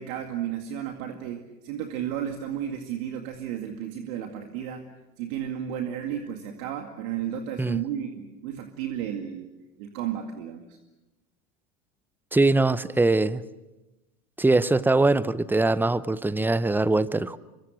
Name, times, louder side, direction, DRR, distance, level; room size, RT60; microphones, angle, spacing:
voice 1, 0.0-4.9 5.2-9.5 9.8-10.8, right 9 dB, 65° right, 2.3 m, -33 dB
voice 2, 12.3-13.4 14.4-17.4, right 2 dB, 5° right, 0.7 m, -22 dB
25.5 x 23.5 x 6.4 m
hypercardioid pair, 90°, 45 cm